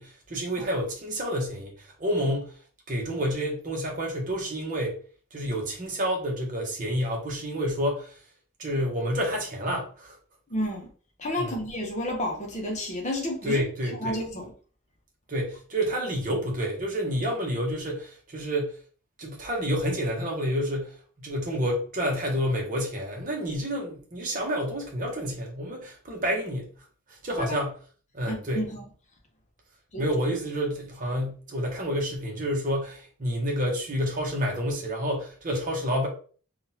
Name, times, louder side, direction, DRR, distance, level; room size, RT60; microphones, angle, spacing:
voice 1, 0.0-2.5 2.9-5.0 5.3-8.1 8.6-10.2 11.4-11.6 13.4-14.2 15.3-18.8 19.2-26.7 27.1-27.8 28.1-28.6 30.0-36.1, equal, 35° right, 1.0 m, -29 dB
voice 2, 10.5-10.9 11.2-13.6 14.0-14.5 27.4-27.6 28.2-28.8 29.9-30.0, left 1 dB, 30° left, 0.8 m, -31 dB
3.7 x 2.4 x 2.7 m
head